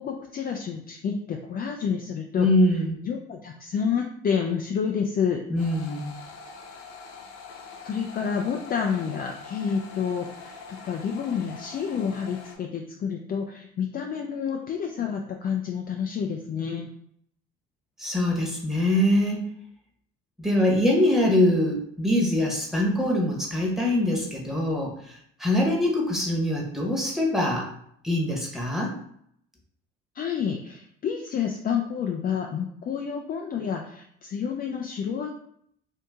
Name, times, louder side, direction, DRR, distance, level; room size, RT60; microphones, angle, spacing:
voice 1, 0.0-2.5 3.0-5.4 7.8-16.9 30.1-35.3, left 7 dB, 30° left, 2 dB, 0.4 m, -29 dB
voice 2, 2.4-3.0 5.5-6.1 18.0-19.5 20.4-27.7 28.0-28.9, left 1 dB, ahead, -2 dB, 1.1 m, -23 dB
sound 1, 5.6-12.6, left 5 dB, 75° left, 0.8 m, -44 dB
2.7 x 2.7 x 3.5 m, 0.69 s
supercardioid pair, 75°, 29 cm